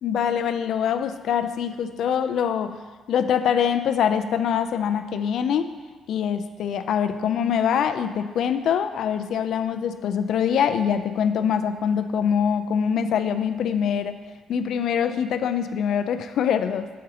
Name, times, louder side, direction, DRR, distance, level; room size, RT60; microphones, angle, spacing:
voice 1, 0.0-2.8 3.1-5.7 6.1-14.2 14.5-16.9, left 8 dB, 75° left, 10 dB, 0.4 m, -24 dB
7.7 x 7.4 x 2.8 m, 1.4 s
cardioid pair, 90°, 0 cm